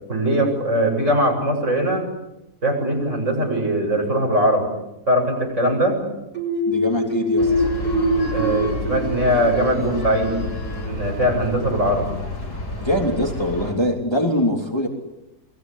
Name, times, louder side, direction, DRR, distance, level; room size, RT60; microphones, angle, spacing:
voice 1, 0.1-2.1 2.6-4.7 5.1-6.0 8.3-10.4 10.8-12.0, equal, 45° right, 1 dB, 7.9 m, -21 dB
sound 1, 6.3-10.0, equal, 70° right, 6.7 m, -23 dB
voice 2, 6.7-7.5 12.8-14.9, equal, 15° left, 1 dB, 3.3 m, -22 dB
sound 2, 7.4-13.7, left 2 dB, 75° left, 8.1 m, -30 dB
29.0 x 22.0 x 8.4 m, 0.93 s
omnidirectional pair, 1.7 m